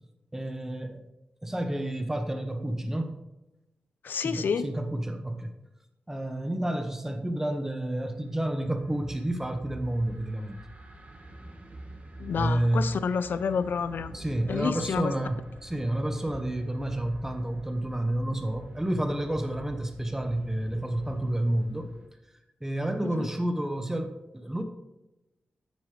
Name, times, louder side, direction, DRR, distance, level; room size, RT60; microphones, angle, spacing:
voice 1, 0.3-1.0 1.4-3.2 4.2-5.5 6.1-10.6 12.3-12.9 14.1-21.9 22.6-24.6, right 1 dB, 10° right, 6 dB, 1.1 m, -30 dB
voice 2, 4.0-4.7 12.2-14.1 14.5-15.1 23.0-23.3, left 6 dB, 75° left, 14 dB, 0.5 m, -29 dB
sound 1, 7.8-22.1, right 1 dB, 40° right, 1.9 m, -46 dB
9.5 x 8.5 x 3.4 m, 0.98 s
cardioid pair, 60°, 3 cm